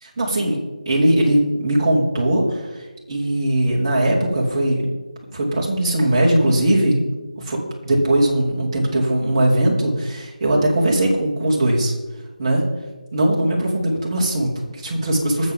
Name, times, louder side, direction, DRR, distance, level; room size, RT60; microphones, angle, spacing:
voice 1, 0.0-0.6 0.8-4.9 5.3-7.0 7.4-11.9 12.4-12.7 13.1-15.5, right 1 dB, 30° right, -4 dB, 3.0 m, -20 dB
21.0 x 7.5 x 3.8 m, 1.2 s
figure-of-eight pair, 165°, 4 cm